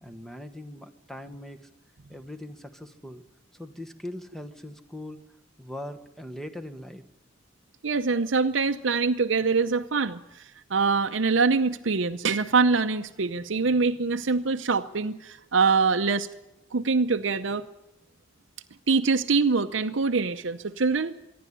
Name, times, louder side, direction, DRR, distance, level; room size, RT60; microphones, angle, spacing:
voice 1, 0.0-1.7 2.1-3.2 3.5-5.2 5.6-7.0, left 1 dB, ahead, 7 dB, 1.2 m, -40 dB
voice 2, 7.8-10.4 10.7-16.3 16.7-17.6 18.9-21.1, right 4 dB, 70° right, 7 dB, 0.7 m, -24 dB
25.0 x 11.0 x 9.9 m, 0.94 s
head